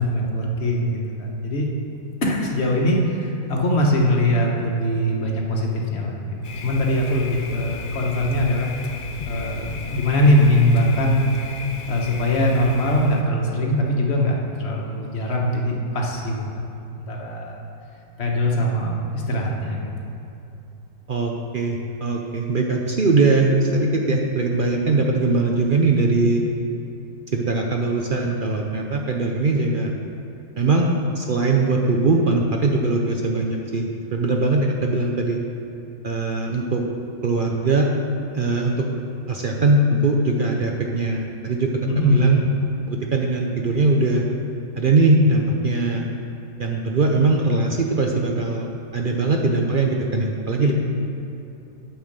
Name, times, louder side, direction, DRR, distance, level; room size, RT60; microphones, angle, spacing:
voice 1, 0.0-1.7 2.2-8.7 9.2-11.2 11.9-16.6 16.9-17.6 18.2-20.1 41.8-42.4 50.6-50.7, equal, 45° left, -1 dB, 1.4 m, -21 dB
Thunder, 6.4-13.2, left 5 dB, 80° left, 0.4 m, -35 dB
voice 2, 21.1-26.4 27.3-29.9 30.6-30.9 31.1-35.4 36.0-36.8 37.2-37.9 38.3-38.8 39.3-41.7 42.0-42.4 42.9-44.2 44.8-46.1 46.6-50.7, right 3 dB, 55° right, 1 dB, 0.6 m, -21 dB
9.0 x 5.7 x 6.6 m, 2.8 s
omnidirectional pair, 1.6 m